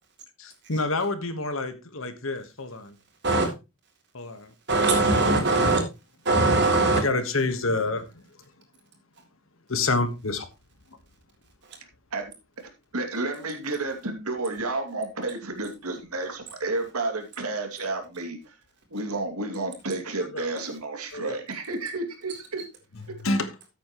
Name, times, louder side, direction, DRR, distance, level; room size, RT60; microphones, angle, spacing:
voice 1, 0.7-2.9 4.1-4.5 6.9-8.1 9.7-10.5 20.3-20.5 21.1-21.4 23.1-23.5, left 3 dB, 65° left, 1.5 m, -27 dB
voice 2, 4.7-5.8 6.3-7.0, right 2 dB, 50° right, 3.8 m, -21 dB
voice 3, 12.9-18.5 18.9-22.6, right 2 dB, 85° right, 2.7 m, -31 dB
13.5 x 8.8 x 3.1 m
head